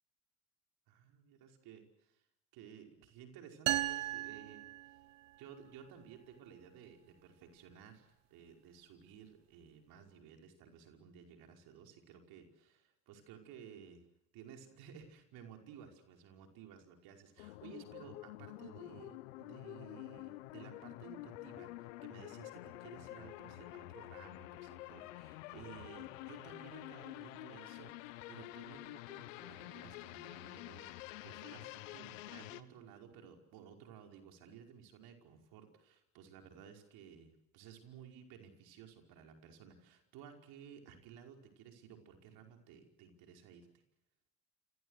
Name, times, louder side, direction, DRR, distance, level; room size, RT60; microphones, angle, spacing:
voice 1, 0.9-2.2 2.5-4.7 5.4-14.0 14.3-30.9 31.2-43.7, right 8 dB, 70° right, 4 dB, 5.3 m, -56 dB
sound 1, 3.7-5.4, right 15 dB, 90° right, 0.9 m, -37 dB
sound 2, 17.4-32.6, left 18 dB, 80° left, 1.2 m, -49 dB
29.0 x 26.0 x 6.6 m, 0.81 s
hypercardioid pair, 60°, 38 cm